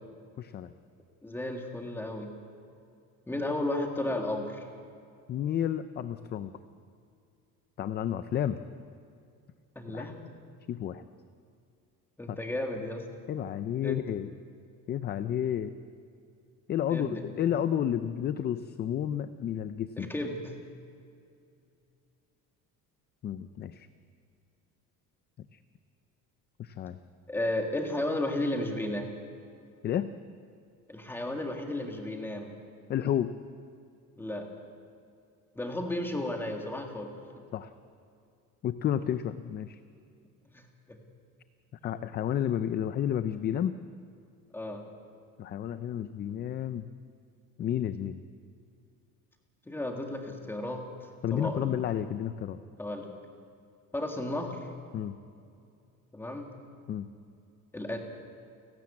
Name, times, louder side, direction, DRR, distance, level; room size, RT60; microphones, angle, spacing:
voice 1, 0.4-0.7 5.3-6.5 7.8-8.6 9.9-10.1 10.7-11.0 12.3-12.4 13.3-14.3 14.9-15.7 16.7-20.1 23.2-23.9 25.5-25.6 26.6-27.0 29.8-30.1 32.9-33.3 37.5-37.7 38.6-39.8 41.8-43.7 45.4-46.9 47.6-48.2 51.2-52.6 54.9-55.2 56.9-57.1, left 10 dB, 30° left, 12 dB, 0.4 m, -31 dB
voice 2, 1.2-2.3 3.3-4.7 9.8-10.2 12.2-13.0 13.8-14.0 16.9-17.2 20.0-20.5 27.3-29.1 30.9-32.6 34.2-34.5 35.6-37.1 40.5-40.7 44.5-44.8 49.7-51.7 52.8-53.1 53.9-54.7 56.1-56.5 57.7-58.0, left 1 dB, 5° left, 3 dB, 1.8 m, -33 dB
29.5 x 12.5 x 8.6 m, 2.5 s
cardioid pair, 175°, 36 cm